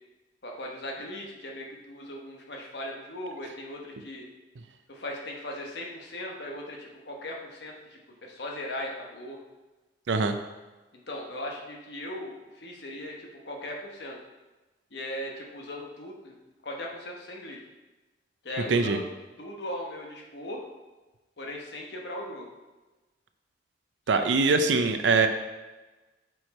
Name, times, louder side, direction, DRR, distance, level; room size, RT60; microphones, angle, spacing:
voice 1, 0.4-4.3 4.9-9.4 11.1-14.2 14.9-16.3 16.6-17.6 18.4-19.0 19.4-20.6 21.4-22.5 24.1-24.3, left 1 dB, 65° left, 0 dB, 1.1 m, -38 dB
voice 2, 24.1-25.3, right 4 dB, 80° right, 7 dB, 0.5 m, -22 dB
6.0 x 4.8 x 4.1 m, 1.2 s
head